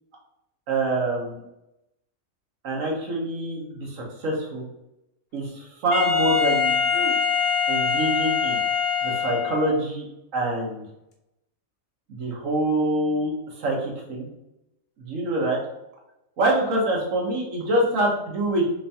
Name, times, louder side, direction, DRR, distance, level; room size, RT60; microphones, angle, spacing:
voice 1, 0.7-1.4 2.6-4.6 5.3-7.1 7.7-8.6 9.0-10.1 10.3-10.8 12.1-13.3 13.6-14.3 15.0-15.6 16.4-18.7, right 1 dB, 70° right, -1 dB, 1.4 m, -25 dB
Wind instrument woodwind instrument, 5.9-9.8, left 6 dB, 55° left, 0.8 m, -23 dB
3.6 x 3.4 x 2.7 m, 0.86 s
omnidirectional pair, 1.4 m